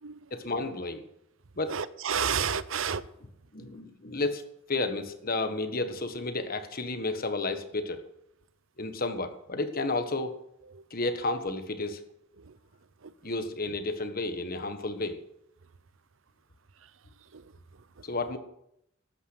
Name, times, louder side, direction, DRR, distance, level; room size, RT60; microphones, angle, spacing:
voice 1, 0.3-1.0 1.6-1.8 3.5-4.4 4.7-8.0 8.8-10.3 10.9-12.0 13.2-15.2 18.0-18.4, left 2 dB, 45° left, 1.5 m, -31 dB
voice 2, 1.7-3.0 10.7-10.8 12.4-12.6 13.0-13.3 17.3-17.5 18.0-18.1, right 7 dB, 75° right, 0.8 m, -32 dB
12.5 x 9.3 x 8.0 m
head